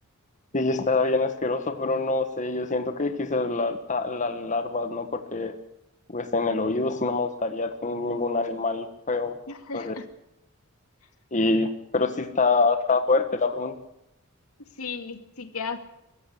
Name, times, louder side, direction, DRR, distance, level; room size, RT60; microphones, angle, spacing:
voice 1, 0.5-5.5 6.1-9.4 9.7-9.9 11.3-13.7, left 3 dB, 35° left, 8 dB, 1.6 m, -25 dB
voice 2, 9.5-10.1 14.8-15.8, left 5 dB, 85° left, 7 dB, 2.4 m, -35 dB
24.0 x 14.5 x 8.3 m, 0.85 s
head